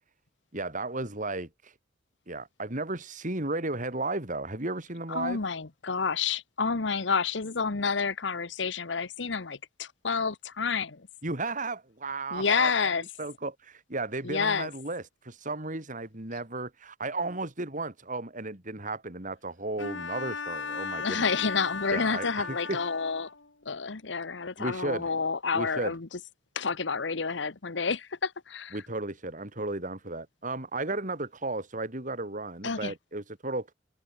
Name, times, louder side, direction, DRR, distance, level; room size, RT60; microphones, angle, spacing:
voice 1, 0.5-1.7 2.3-5.4 11.2-12.9 13.2-21.3 21.9-22.8 24.6-25.1 25.5-25.9 28.7-33.7, right 2 dB, 45° right, 3.7 m, -34 dB
voice 2, 5.1-11.1 12.3-13.0 14.2-14.7 21.0-23.3 23.6-26.1 26.5-28.8 32.6-32.9, left 5 dB, 70° left, 1.1 m, -29 dB
Bowed string instrument, 19.8-23.5, left 5 dB, 90° left, 3.8 m, -36 dB
head